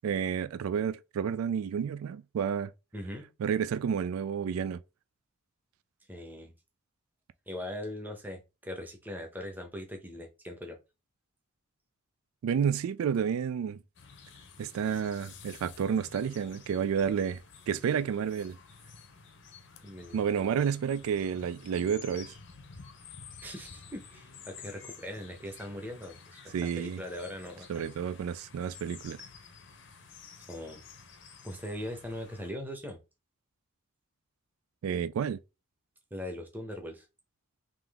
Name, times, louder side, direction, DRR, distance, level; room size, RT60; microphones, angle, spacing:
voice 1, 0.0-2.7 3.4-4.8 12.4-13.8 14.6-17.4 17.7-18.6 20.1-22.4 26.5-27.0 27.7-29.3 34.8-35.4, right 7 dB, 85° right, 0.3 m, -30 dB
voice 2, 2.9-3.3 6.1-6.5 7.5-10.8 19.8-20.2 23.4-27.8 30.5-30.8 31.4-33.0 36.1-37.1, left 1 dB, 10° right, 0.8 m, -40 dB
sound 1, 13.9-32.5, left 6 dB, 55° left, 0.6 m, -51 dB
3.7 x 2.9 x 3.4 m
head